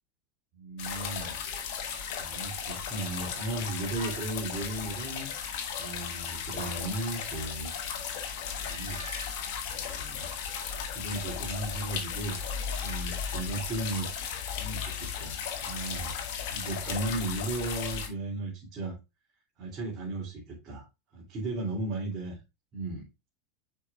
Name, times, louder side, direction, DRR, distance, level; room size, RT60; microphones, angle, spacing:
voice 1, 0.5-1.4 2.2-5.5 5.8-7.7 8.6-9.0 9.7-10.3 10.9-12.4 12.8-14.1 14.5-16.2 16.5-19.0 19.6-20.8 21.1-22.4 22.7-23.0, right 2 dB, 35° right, -5 dB, 2.7 m, -36 dB
sound 1, 0.8-18.1, left 7 dB, 50° left, 1.4 m, -35 dB
sound 2, 3.6-5.7 6.1-7.3 8.5-10.3, right 3 dB, 85° right, 1.5 m, -51 dB
9.8 x 4.7 x 2.4 m, 0.25 s
figure-of-eight pair, 80°, 0 cm